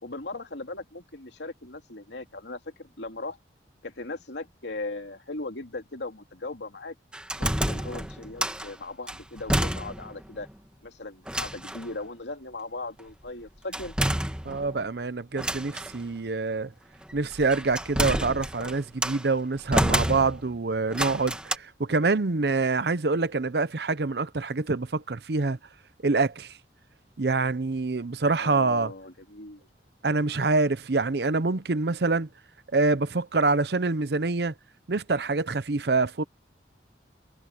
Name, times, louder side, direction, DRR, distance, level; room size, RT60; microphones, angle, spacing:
voice 1, 0.0-3.4 3.8-6.9 7.4-10.5 10.8-13.9 28.4-29.7, left 2 dB, 75° left, 2.8 m, -38 dB
sound 1, 7.1-8.7 9.1-10.2 10.5-10.6 11.3-11.9 13.7-14.8 15.4-16.0 17.1-19.3 19.7-20.6 20.9-21.6, right 1 dB, 5° right, 1.5 m, -29 dB
voice 2, 14.4-16.7 17.1-25.6 26.0-26.5 27.2-28.9 30.0-32.3 32.7-34.5 34.9-36.2, right 3 dB, 60° right, 0.7 m, -26 dB
head